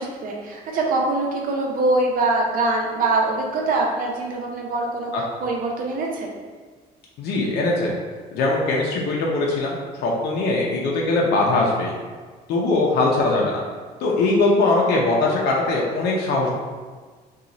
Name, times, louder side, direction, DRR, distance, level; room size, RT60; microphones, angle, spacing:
voice 1, 0.0-5.1 5.4-6.3, right 2 dB, 55° right, -1 dB, 0.7 m, -23 dB
voice 2, 7.2-7.9 8.3-11.9 12.5-13.6 14.0-16.5, left 2 dB, 75° left, -3 dB, 0.6 m, -21 dB
2.9 x 2.4 x 3.8 m, 1.5 s
cardioid pair, 110°, 17 cm